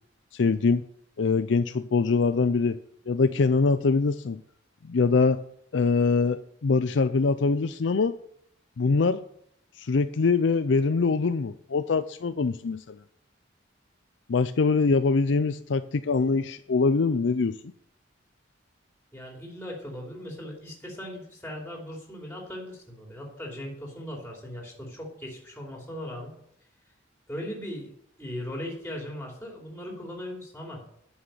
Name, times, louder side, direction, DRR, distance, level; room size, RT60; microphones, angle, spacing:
voice 1, 0.3-0.8 1.2-2.8 3.1-4.4 4.8-5.4 5.7-8.2 8.8-9.2 9.8-13.0 14.3-17.6, left 4 dB, 70° left, 11 dB, 0.5 m, -23 dB
voice 2, 19.1-26.3 27.3-27.9 28.2-30.8, equal, 10° left, -1 dB, 3.0 m, -38 dB
11.0 x 6.5 x 9.0 m, 0.69 s
head